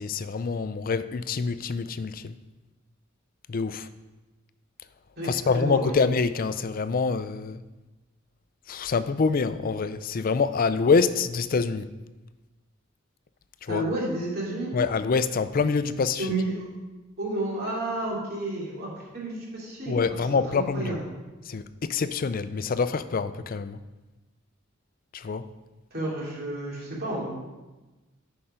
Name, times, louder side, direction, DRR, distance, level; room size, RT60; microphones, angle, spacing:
voice 1, 0.0-2.4 3.5-3.9 5.2-7.6 8.7-11.9 13.6-13.8 14.7-16.3 19.9-21.0 21.4-23.8 25.1-25.5, left 4 dB, 45° left, 13 dB, 0.4 m, -26 dB
voice 2, 5.2-6.0 13.7-14.7 16.2-16.7 17.2-21.0 25.9-27.3, right 2 dB, 50° right, -4 dB, 3.0 m, -31 dB
9.6 x 5.8 x 5.1 m, 1.1 s
head